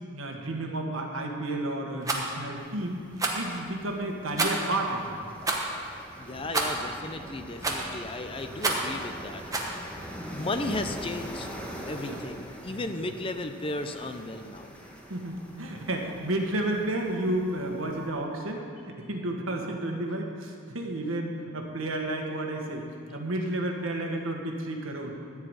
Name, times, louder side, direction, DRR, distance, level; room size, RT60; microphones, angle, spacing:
voice 1, 0.1-3.1 3.3-5.2 12.0-12.2 12.7-12.8 15.1-22.9 23.1-25.2, right 1 dB, 80° right, 1 dB, 1.5 m, -31 dB
Rattle, 2.0-2.3 3.2-3.5 4.4-4.7 5.4-5.7 6.5-6.9 7.6-8.0 8.6-8.9 9.5-9.7, right 3 dB, 15° right, 1.0 m, -28 dB
sound 1, 2.6-18.1, equal, 5° left, 1.2 m, -43 dB
voice 2, 6.2-9.8 10.2-11.5 11.9-14.7, left 2 dB, 25° left, 7 dB, 0.5 m, -35 dB
14.0 x 4.8 x 9.0 m, 2.4 s
head